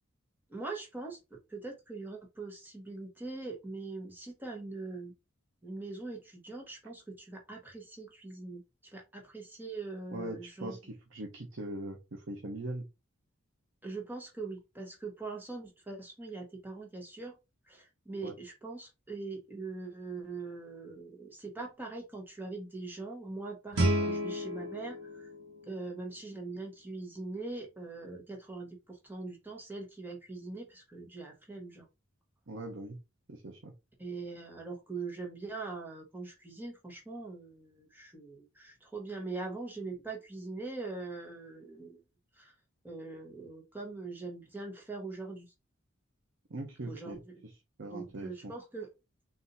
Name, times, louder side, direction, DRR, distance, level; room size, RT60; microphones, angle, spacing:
voice 1, 0.5-5.1 5.6-10.8 13.8-17.4 17.7-25.3 25.7-31.9 34.0-42.0 42.3-42.5 42.8-45.5 46.8-47.2 47.9-48.9, right 3 dB, 10° right, 0 dB, 1.2 m, -42 dB
voice 2, 10.1-12.9 18.2-18.4 32.5-33.0 33.3-33.7 46.5-47.2 47.8-48.5, right 1 dB, 60° right, 3 dB, 0.8 m, -41 dB
Guitar, 23.7-26.5, right 1 dB, 80° right, 1.5 m, -33 dB
4.0 x 2.6 x 4.0 m, 0.25 s
head